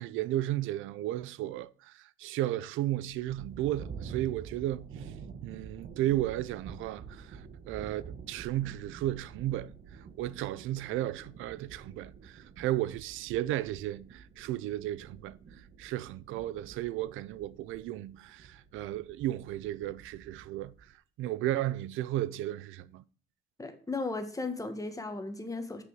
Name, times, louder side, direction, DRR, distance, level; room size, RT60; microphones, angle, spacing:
voice 1, 0.0-5.1 5.4-9.7 10.2-15.4 15.8-20.9 21.2-23.0, right 14 dB, 90° right, 0.5 m, -34 dB
sound 1, 2.9-20.9, right 6 dB, 55° right, 1.2 m, -48 dB
voice 2, 23.6-25.8, left 3 dB, 15° left, 1.5 m, -36 dB
6.8 x 5.3 x 6.3 m
cardioid pair, 90°, 20 cm